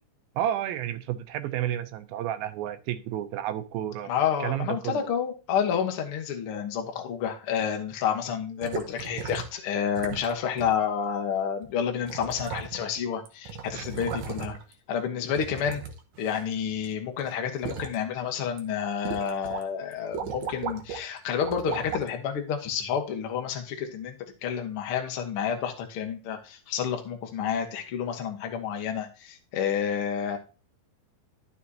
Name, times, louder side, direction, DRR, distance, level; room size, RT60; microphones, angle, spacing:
voice 1, 0.4-4.1 4.4-5.1 13.7-13.8, right 11 dB, 90° right, 10 dB, 2.6 m, -31 dB
voice 2, 4.1-14.6 14.9-15.8 16.2-24.1 24.4-30.4, left 8 dB, 60° left, 4 dB, 1.5 m, -29 dB
sound 1, 8.6-9.6 10.0-10.3 10.6-10.7 11.6-11.7 12.0-13.0 13.3-14.7 15.3-16.9 17.2-18.0 18.4-18.6 19.1-19.6 19.9-21.0 21.4-22.1 22.8-22.9, right 6 dB, 65° right, 2.0 m, -36 dB
12.0 x 6.4 x 2.8 m, 0.32 s
omnidirectional pair, 4.2 m